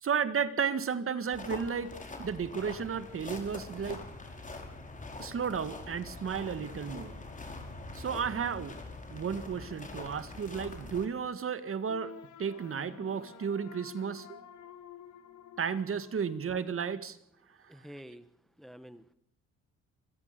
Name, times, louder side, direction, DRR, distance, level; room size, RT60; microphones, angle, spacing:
voice 1, 0.0-1.9 2.2-4.0 5.2-7.2 7.9-8.7 9.1-12.1 12.4-14.4 15.6-17.2, right 6 dB, 45° right, 12 dB, 1.9 m, -33 dB
sound 1, 1.3-11.1, left 2 dB, 25° left, 4.9 m, -44 dB
sound 2, 11.9-16.9, left 8 dB, 75° left, 3.2 m, -51 dB
voice 2, 17.7-18.3 18.6-19.1, equal, ahead, 13 dB, 1.2 m, -48 dB
26.5 x 17.5 x 6.8 m, 0.69 s
cardioid pair, 90°, 30 cm